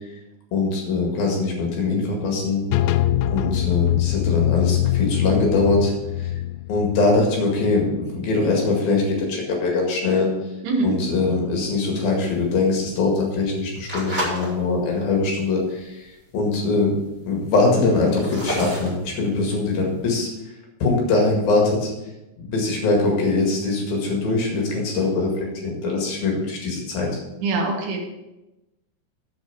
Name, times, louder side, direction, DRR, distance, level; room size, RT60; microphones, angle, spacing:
voice 1, 0.5-2.7 3.3-6.3 6.7-10.3 10.8-16.9 17.3-20.3 20.8-21.9 22.4-27.1, left 3 dB, 60° left, -1 dB, 3.4 m, -22 dB
sound 1, 2.7-8.4, left 13 dB, 90° left, 3.0 m, -23 dB
voice 2, 10.6-11.0 27.4-28.1, right 3 dB, 80° right, 0 dB, 3.7 m, -23 dB
sound 2, 12.2-14.5 15.0-15.3 15.8-16.1 16.4-16.9 17.4-20.0, equal, 5° right, 2.8 m, -31 dB
8.3 x 7.1 x 6.0 m, 0.97 s
omnidirectional pair, 5.4 m